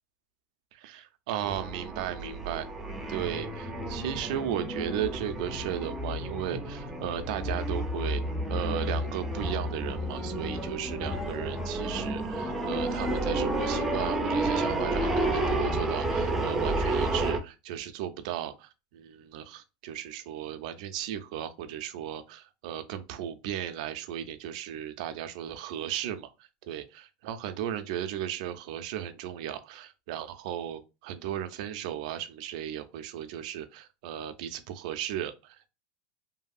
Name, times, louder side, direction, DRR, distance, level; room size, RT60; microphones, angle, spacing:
voice 1, 0.7-2.7 3.1-8.2 8.5-35.7, right 10 dB, 65° right, 0.4 m, -36 dB
sound 1, 1.4-17.4, right 1 dB, 5° right, 0.4 m, -31 dB
2.7 x 2.6 x 2.3 m
supercardioid pair, 155°, 4 cm